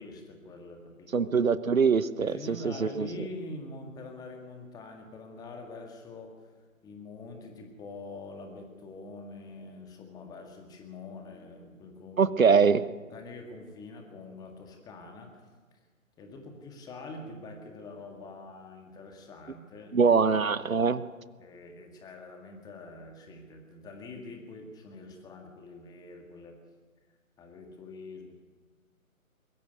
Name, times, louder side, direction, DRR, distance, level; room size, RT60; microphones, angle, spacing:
voice 1, 0.0-1.1 2.2-6.5 6.8-12.4 13.1-15.4 15.7-15.8 16.2-20.4 21.4-26.6 27.4-28.3, left 2 dB, 10° left, 3 dB, 1.9 m, -45 dB
voice 2, 1.1-2.3 2.6-3.1 12.2-12.9 19.9-21.0, right 5 dB, 70° right, 15 dB, 1.0 m, -23 dB
22.0 x 14.0 x 9.3 m, 1.4 s
figure-of-eight pair, 140°, 42 cm